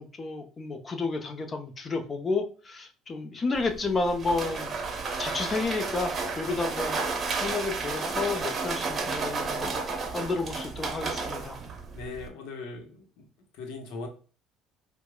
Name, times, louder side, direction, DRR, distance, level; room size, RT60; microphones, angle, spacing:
voice 1, 0.0-4.8 5.2-7.0 7.4-9.8 10.1-11.6, left 3 dB, 35° left, 6 dB, 0.8 m, -31 dB
sound 1, 3.5-12.3, right 4 dB, 40° right, 0.8 m, -32 dB
voice 2, 11.9-13.3 13.5-14.1, left 3 dB, 75° left, 4 dB, 0.9 m, -39 dB
4.6 x 2.2 x 2.3 m, 0.38 s
supercardioid pair, 75°, 0 cm